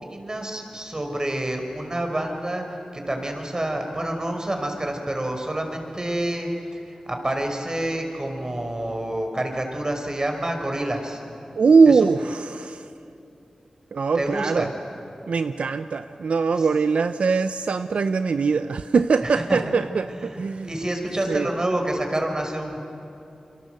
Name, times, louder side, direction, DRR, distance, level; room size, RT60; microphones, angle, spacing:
voice 1, 0.1-2.6 2.9-11.2 11.9-12.1 14.2-14.7 16.5-16.7 19.2-19.6 20.1-22.8, right 1 dB, 35° right, 4 dB, 5.2 m, -28 dB
voice 2, 11.6-12.9 13.9-14.7 15.3-20.7 21.3-21.5, right 5 dB, 80° right, 11 dB, 0.6 m, -21 dB
28.5 x 23.0 x 7.9 m, 2.7 s
cardioid pair, 40°, 2 cm